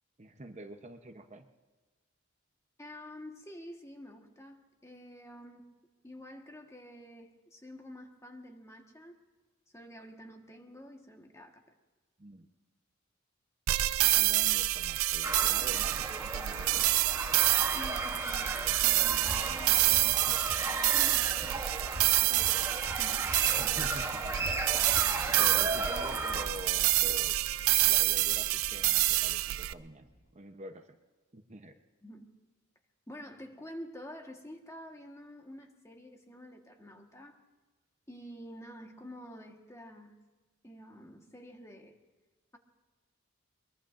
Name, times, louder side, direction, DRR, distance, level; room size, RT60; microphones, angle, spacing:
voice 1, 0.2-1.5 12.2-12.5 14.1-17.0 20.1-20.4 23.5-24.3 25.3-27.4 27.8-31.0 31.3-31.8, right 1 dB, 35° right, 6 dB, 0.9 m, -46 dB
voice 2, 2.8-5.7 6.0-9.2 9.7-11.6 17.6-20.3 20.6-21.7 22.2-23.3 32.0-32.3 33.1-37.4 38.1-40.3 40.6-42.0, equal, 15° left, 3 dB, 1.5 m, -49 dB
sound 1, 13.7-29.7, right 16 dB, 85° right, 0.4 m, -28 dB
sound 2, 15.2-26.5, right 2 dB, 15° right, 1.0 m, -35 dB
sound 3, 23.4-30.3, equal, 55° left, 3.7 m, -54 dB
23.0 x 22.0 x 2.6 m, 1.3 s
head